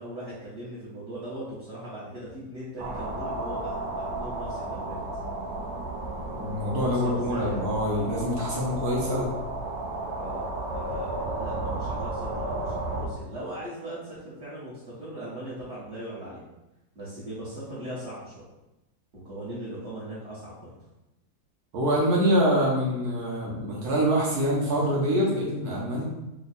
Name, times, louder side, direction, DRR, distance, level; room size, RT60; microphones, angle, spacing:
voice 1, 0.0-5.0 6.7-7.7 10.2-10.5 10.7-16.4 16.9-18.5 19.1-20.7, right 1 dB, 45° right, -11 dB, 1.3 m, -39 dB
sound 1, 2.8-13.1, right 2 dB, 90° right, 1.3 m, -33 dB
voice 2, 6.3-9.3 21.7-26.0, equal, 65° right, -4 dB, 1.3 m, -25 dB
3.5 x 2.3 x 4.1 m, 0.95 s
omnidirectional pair, 1.8 m